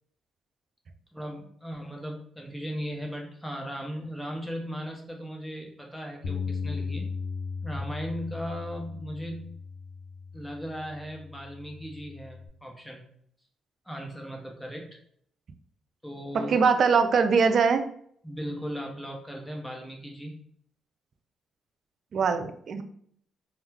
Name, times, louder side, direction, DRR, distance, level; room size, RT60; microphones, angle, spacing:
voice 1, 1.1-7.1 7.6-9.6 10.3-13.0 13.9-15.0 16.0-16.6 18.2-20.4, equal, 5° left, 0 dB, 0.9 m, -37 dB
Bass guitar, 6.2-12.5, left 5 dB, 80° left, 0.4 m, -37 dB
voice 2, 16.3-17.8 22.1-22.8, right 5 dB, 60° right, 8 dB, 0.3 m, -22 dB
2.2 x 2.2 x 3.2 m, 0.64 s
supercardioid pair, 55°, 0 cm